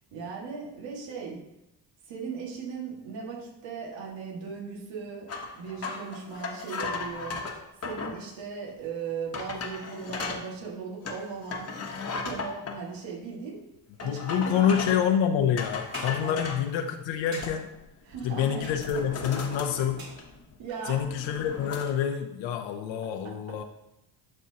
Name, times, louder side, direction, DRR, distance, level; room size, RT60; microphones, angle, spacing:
voice 1, 0.1-1.4 2.1-5.3 5.5-11.7 12.2-13.7 14.0-14.8 16.2-16.3 18.0-18.7 20.6-21.0, right 5 dB, 80° right, -2 dB, 1.9 m, -38 dB
sound 1, 5.3-8.2 8.8-8.9 9.3-10.4 11.0-12.8 14.0-15.1 15.6-16.7 17.1-17.8 18.1-18.3 18.7-20.5 20.9-21.8, left 4 dB, 35° left, 1.1 m, -36 dB
voice 2, 14.0-17.7 18.2-20.1 20.9-23.6, left 8 dB, 85° left, 5 dB, 0.7 m, -27 dB
sound 2, 15.9-16.3 17.3-17.6 18.6-19.1 20.0-20.4 21.9-22.0, right 3 dB, 50° right, 1.6 m, -45 dB
12.0 x 4.4 x 2.8 m, 0.89 s
cardioid pair, 120°, 44 cm